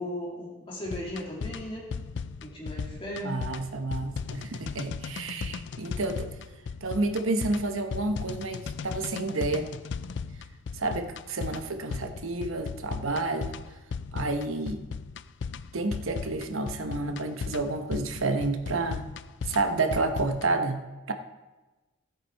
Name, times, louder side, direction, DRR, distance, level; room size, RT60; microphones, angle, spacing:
voice 1, 0.0-1.8 2.4-3.4, left 1 dB, 25° left, -3 dB, 2.6 m, -36 dB
sound 1, 0.9-20.5, left 5 dB, 60° left, 0.4 m, -37 dB
voice 2, 3.2-6.3 6.8-9.7 10.7-13.5 14.1-14.8 15.7-19.1 19.5-21.1, right 2 dB, 85° right, 6 dB, 1.0 m, -30 dB
13.5 x 8.1 x 4.6 m, 1.2 s
head